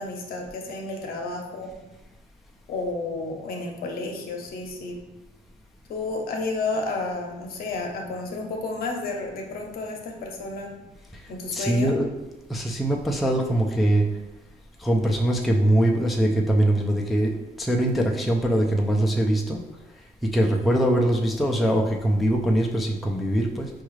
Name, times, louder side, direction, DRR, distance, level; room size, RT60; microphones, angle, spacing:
voice 1, 0.0-1.7 2.7-5.0 5.9-10.7 11.3-12.0, left 3 dB, 60° left, 2 dB, 0.7 m, -31 dB
voice 2, 11.5-12.1 12.5-14.0 14.8-17.3 17.6-19.6 20.3-23.7, right 1 dB, ahead, 0 dB, 0.3 m, -22 dB
4.5 x 2.4 x 3.1 m, 1.0 s
cardioid pair, 110°, 17 cm